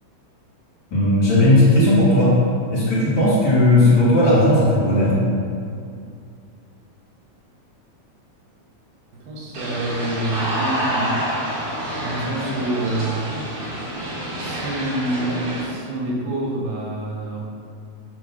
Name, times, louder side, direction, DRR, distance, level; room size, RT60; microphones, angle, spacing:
voice 1, 0.9-2.4 2.7-5.2, left 1 dB, 40° left, -9 dB, 2.0 m, -16 dB
voice 2, 9.1-11.2 12.0-13.2 14.4-17.4, right 1 dB, 90° right, -3 dB, 2.7 m, -27 dB
sound 1, 9.5-15.6, right 1 dB, 55° right, 2.4 m, -27 dB
7.8 x 3.0 x 6.1 m, 2.4 s
omnidirectional pair, 3.7 m